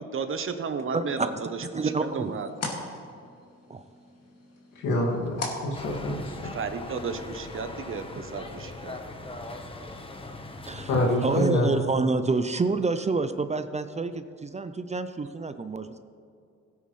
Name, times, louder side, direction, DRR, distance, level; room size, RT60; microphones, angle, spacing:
voice 1, 0.0-2.5 6.4-9.0, right 5 dB, 45° right, 9 dB, 1.0 m, -33 dB
voice 2, 0.9-1.3 1.7-2.3 3.7-3.8 10.7-10.9 11.2-16.0, right 3 dB, 20° right, 10 dB, 0.6 m, -28 dB
sound 1, 1.2-6.6, left 3 dB, 55° left, 2.5 m, -40 dB
voice 3, 4.8-6.3 10.9-11.7, left 1 dB, 80° left, -2 dB, 2.4 m, -26 dB
sound 2, 5.7-11.5, left 2 dB, 20° left, 1.2 m, -40 dB
16.5 x 9.3 x 3.3 m, 2.5 s
cardioid pair, 90°, 30 cm